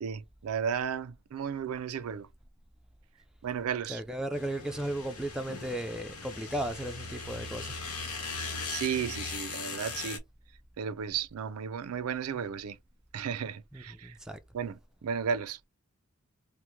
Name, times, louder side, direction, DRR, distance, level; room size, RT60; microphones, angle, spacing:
voice 1, 0.0-2.3 3.4-4.0 8.7-10.2 10.8-12.8 13.1-14.1 14.5-15.7, right 7 dB, 85° right, 0.4 m, -34 dB
voice 2, 3.9-7.8 13.7-14.4, right 1 dB, 5° right, 0.3 m, -35 dB
sound 1, 4.3-10.2, left 4 dB, 90° left, 0.9 m, -39 dB
2.9 x 2.1 x 3.5 m
head